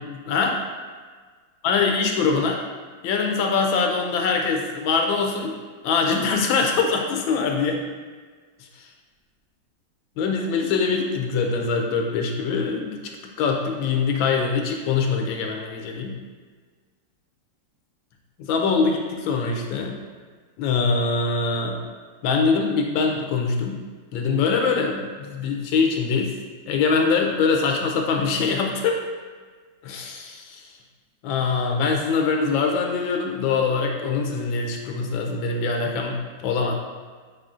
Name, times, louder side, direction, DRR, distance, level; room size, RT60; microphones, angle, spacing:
voice 1, 0.1-0.6 1.6-2.6 3.0-7.8 10.2-13.0 13.4-16.1 18.4-20.0 20.6-21.8 22.2-23.8 24.1-26.3 26.7-29.0 29.8-30.7 31.2-36.7, left 4 dB, 85° left, 2 dB, 1.3 m, -23 dB
4.8 x 3.8 x 2.4 m, 1.5 s
omnidirectional pair, 2.1 m